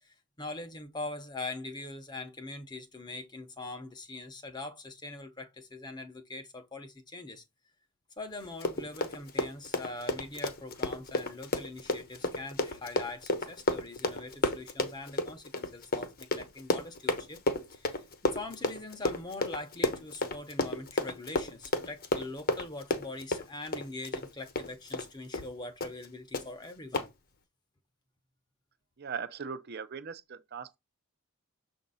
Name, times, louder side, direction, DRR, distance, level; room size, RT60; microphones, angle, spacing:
voice 1, 0.0-7.4 8.2-17.4 17.7-27.1, left 2 dB, 20° left, 0.8 m, -42 dB
Run, 8.4-25.1 25.3-25.5 25.8-26.1 26.3-26.4 26.9-27.1, left 2 dB, 45° left, 0.9 m, -32 dB
voice 2, 29.0-30.8, right 6 dB, 45° right, 0.5 m, -39 dB
6.9 x 2.6 x 5.5 m
head